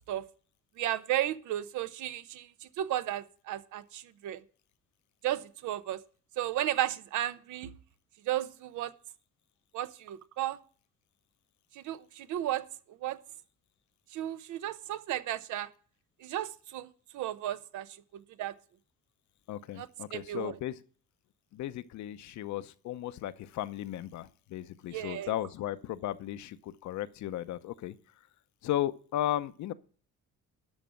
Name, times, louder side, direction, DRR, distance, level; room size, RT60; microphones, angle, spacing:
voice 1, 0.8-2.5 2.8-4.4 5.2-6.0 6.4-7.8 8.3-8.9 9.7-10.6 11.8-12.6 13.0-13.2 14.1-15.7 16.2-17.9 18.1-18.5 19.8-20.5 24.9-25.3, right 13 dB, 75° right, 0.8 m, -34 dB
voice 2, 19.5-20.8 21.5-28.0 28.6-29.7, left 12 dB, 70° left, 0.8 m, -35 dB
12.5 x 4.9 x 7.6 m
cardioid pair, 110°, 30 cm